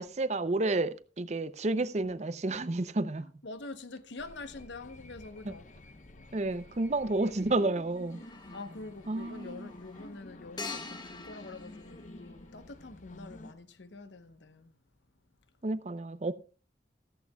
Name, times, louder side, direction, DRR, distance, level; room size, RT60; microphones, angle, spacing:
voice 1, 0.0-3.3 5.5-5.6 6.3-8.2 9.1-9.7 15.6-16.3, right 2 dB, 40° right, 0.6 m, -31 dB
voice 2, 3.2-5.7 8.5-14.7, left 3 dB, 85° left, 1.0 m, -45 dB
sound 1, 4.2-13.5, left 1 dB, 45° left, 0.8 m, -51 dB
sound 2, 5.2-5.4 7.9-12.7, left 4 dB, 25° left, 1.5 m, -46 dB
14.5 x 14.5 x 2.3 m
head